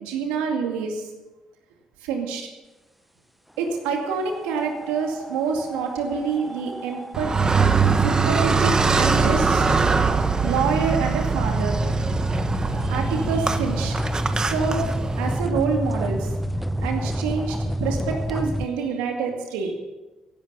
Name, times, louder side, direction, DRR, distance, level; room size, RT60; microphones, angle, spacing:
voice 1, 0.0-1.0 2.0-2.5 3.6-7.3 8.0-9.7 10.4-11.8 12.8-13.9 14.5-14.9 15.2-16.3 16.8-19.7, right 5 dB, 90° right, 2 dB, 2.3 m, -27 dB
sound 1, 4.3-18.6, equal, 5° right, 0.9 m, -30 dB
Car, 7.1-15.4, right 4 dB, 35° right, 1.5 m, -22 dB
16.0 x 11.0 x 5.6 m, 1.1 s
supercardioid pair, 55°, 2 cm